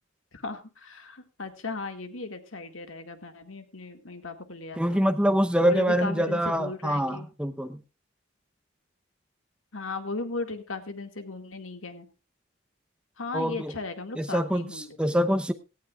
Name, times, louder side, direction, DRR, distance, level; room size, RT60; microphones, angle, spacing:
voice 1, 0.3-5.1 5.6-7.3 9.7-12.1 13.2-15.0, left 3 dB, 80° left, 7 dB, 2.1 m, -36 dB
voice 2, 4.7-7.8 13.3-13.7 14.2-15.5, equal, 5° right, 8 dB, 0.8 m, -25 dB
18.0 x 14.5 x 2.4 m, 0.31 s
head